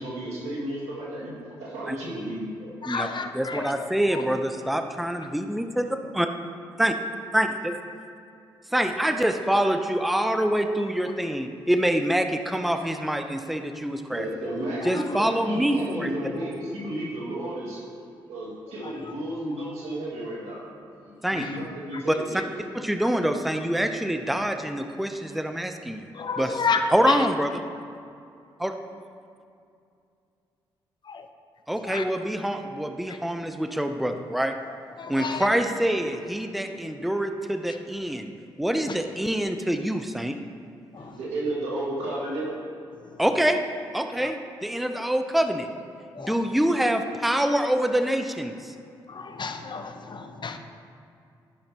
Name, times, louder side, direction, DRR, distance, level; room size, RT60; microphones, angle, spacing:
voice 1, 0.0-2.7 14.1-17.8 18.3-22.4 41.0-42.5, right 1 dB, 85° right, -5 dB, 1.9 m, -33 dB
voice 2, 2.8-3.7 4.1-4.2 14.9-15.0 18.8-19.1 21.4-21.5 26.1-27.3 31.1-31.3 31.8-32.0 33.1-33.2 35.0-35.5 40.9-41.2 44.2-44.3 46.1-46.3 49.1-50.6, left 4 dB, 45° left, 7 dB, 0.7 m, -31 dB
voice 3, 3.3-5.9 6.1-6.3 6.8-6.9 7.3-7.8 8.7-14.2 14.8-16.1 21.2-21.5 22.1-22.4 22.7-26.1 26.4-26.6 26.9-27.5 28.6-28.7 31.7-34.5 35.1-38.3 38.6-40.4 43.2-43.6 43.9-45.7 46.2-48.7, right 1 dB, ahead, 6 dB, 0.6 m, -25 dB
12.0 x 5.7 x 2.8 m, 2.4 s
supercardioid pair, 45°, 11 cm